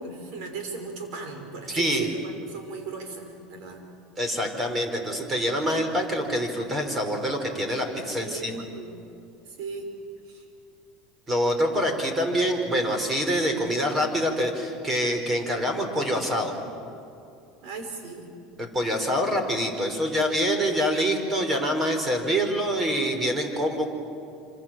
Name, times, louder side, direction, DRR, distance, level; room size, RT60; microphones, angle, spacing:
voice 1, 0.0-3.8 8.2-8.9 9.5-9.9 10.2-10.4 17.6-18.3 18.9-19.0, right 4 dB, 65° right, 5 dB, 6.2 m, -37 dB
voice 2, 1.7-2.1 4.2-8.5 11.3-16.5 18.6-23.9, equal, 20° right, 5 dB, 4.9 m, -25 dB
27.0 x 27.0 x 7.7 m, 2.7 s
supercardioid pair, 130°, 0 cm